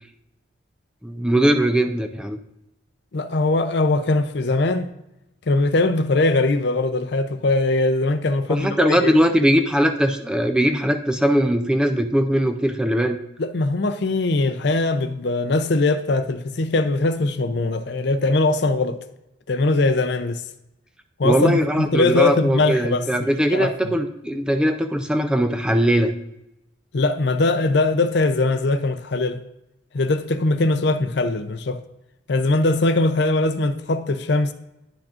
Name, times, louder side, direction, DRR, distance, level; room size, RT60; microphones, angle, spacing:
voice 1, 1.0-2.4 8.5-13.2 21.2-26.1, equal, 5° right, 0.4 m, -20 dB
voice 2, 3.1-4.9 5.5-9.1 13.4-19.0 19.5-20.4 21.2-21.5 21.8-23.9 26.9-29.4 29.9-31.8 32.3-34.5, left 2 dB, 60° left, 0.6 m, -21 dB
10.0 x 6.0 x 2.5 m
head